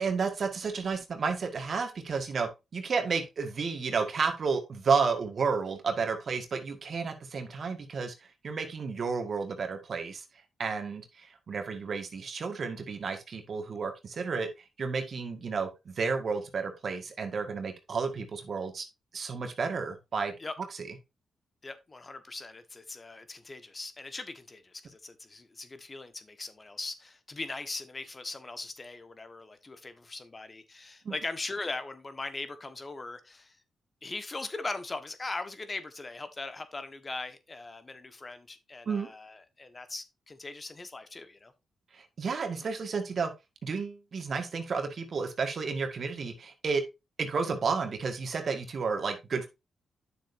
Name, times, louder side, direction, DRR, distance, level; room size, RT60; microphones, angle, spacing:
voice 1, 0.0-8.1 8.4-10.2 10.6-14.5 14.8-18.9 19.1-20.3 31.1-31.2 38.9-39.1 41.9-43.3 43.6-46.8 47.2-49.5, right 5 dB, 60° right, 1.7 m, -31 dB
voice 2, 21.6-33.6 34.0-41.5, left 3 dB, 35° left, 1.4 m, -40 dB
9.0 x 6.8 x 2.7 m
supercardioid pair, 55°, 0 cm